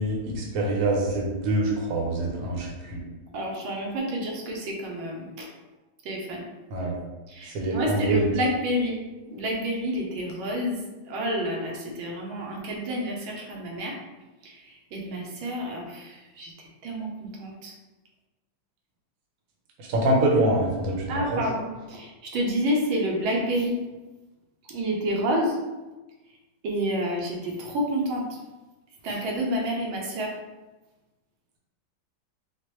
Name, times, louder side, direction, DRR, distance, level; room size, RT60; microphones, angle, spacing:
voice 1, 0.0-3.0 6.7-6.9 7.5-8.3 19.8-21.4, right 1 dB, 60° right, -2 dB, 1.1 m, -25 dB
voice 2, 3.3-5.5 6.0-6.4 7.3-9.0 9.3-10.8 11.1-13.9 14.9-16.5 16.8-17.1 17.4-17.7 21.1-23.8 24.7-25.6 26.6-28.3 29.0-30.3, equal, 85° right, -1 dB, 1.5 m, -29 dB
4.3 x 2.2 x 3.0 m, 1.1 s
omnidirectional pair, 2.1 m